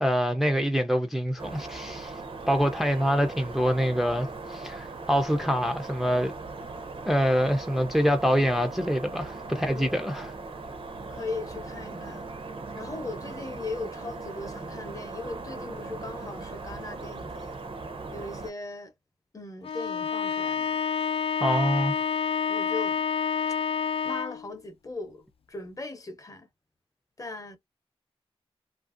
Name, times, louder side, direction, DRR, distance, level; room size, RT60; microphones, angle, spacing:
voice 1, 0.0-2.2 2.5-6.3 7.1-10.3 21.4-21.9, equal, ahead, 0.4 m, -25 dB
sound 1, 1.4-18.5, right 3 dB, 55° right, 0.6 m, -39 dB
voice 2, 11.1-12.2 12.7-17.6 18.1-18.9 19.3-20.8 22.5-23.0 23.5-23.6 24.0-26.5 27.2-27.6, left 3 dB, 35° left, 0.7 m, -38 dB
Bowed string instrument, 19.6-24.5, left 6 dB, 65° left, 0.4 m, -28 dB
2.8 x 2.5 x 2.4 m
wide cardioid pair, 135°, 11 cm